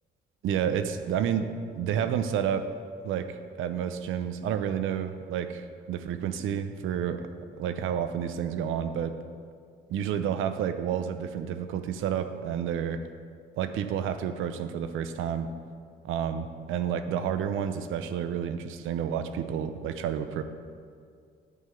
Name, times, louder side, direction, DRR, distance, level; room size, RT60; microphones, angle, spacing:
voice 1, 0.4-2.7 3.0-7.3 7.6-9.1 9.9-13.0 13.6-15.5 16.0-20.4, right 8 dB, 90° right, 9 dB, 0.7 m, -30 dB
9.6 x 5.6 x 8.3 m, 2.2 s
cardioid pair, 90°, 20 cm